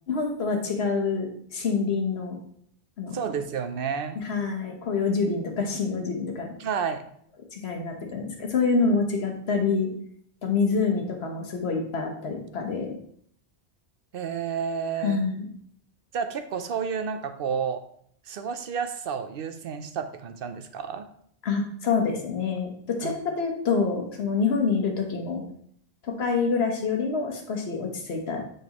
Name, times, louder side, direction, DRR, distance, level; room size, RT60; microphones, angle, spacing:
voice 1, 0.1-2.4 3.0-3.2 4.2-6.5 7.5-9.9 10.4-12.9 15.0-15.5 21.4-25.4 26.0-28.4, left 4 dB, 70° left, 2 dB, 1.3 m, -26 dB
voice 2, 3.1-4.2 6.6-7.0 14.1-15.2 16.1-17.8 18.3-21.1 23.0-23.1, right 6 dB, 65° right, 8 dB, 0.7 m, -30 dB
6.0 x 5.3 x 2.9 m, 0.66 s
omnidirectional pair, 1.1 m